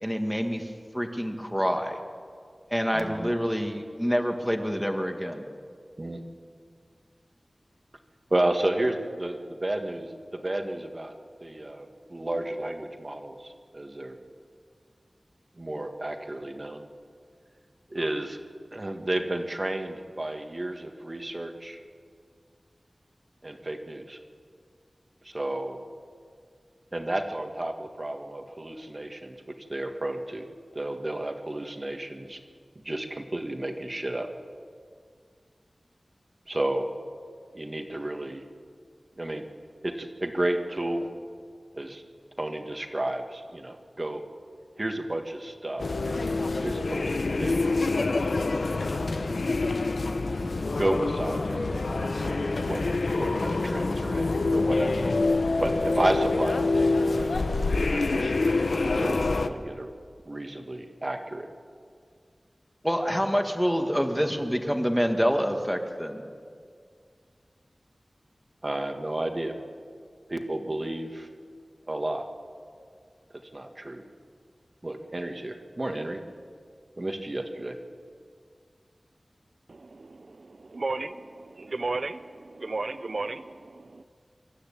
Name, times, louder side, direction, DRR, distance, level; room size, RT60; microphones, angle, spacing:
voice 1, 0.0-2.0 2.7-5.5 62.8-66.2, equal, ahead, 4 dB, 1.9 m, -27 dB
voice 2, 2.9-3.3 6.0-6.2 8.3-11.2 11.4-14.2 15.6-16.8 17.9-18.4 18.7-21.8 23.4-24.2 25.2-25.8 26.9-29.4 29.7-30.5 30.7-32.4 32.8-34.3 36.5-36.9 37.5-38.4 39.2-39.5 39.8-41.1 41.7-42.0 42.4-44.2 44.8-45.9 46.6-47.7 48.9-49.0 50.8-55.1 55.6-59.9 60.3-61.5 68.6-69.5 70.3-71.3 71.9-72.3 73.5-74.0 74.8-76.2 77.0-77.8, right 1 dB, 35° right, 5 dB, 1.8 m, -32 dB
sound 1, 45.8-59.5, left 3 dB, 85° left, 0.9 m, -26 dB
voice 3, 79.7-81.1 81.6-84.0, right 3 dB, 70° right, 10 dB, 0.5 m, -34 dB
25.0 x 13.0 x 8.7 m, 2.1 s
wide cardioid pair, 70°, 0 cm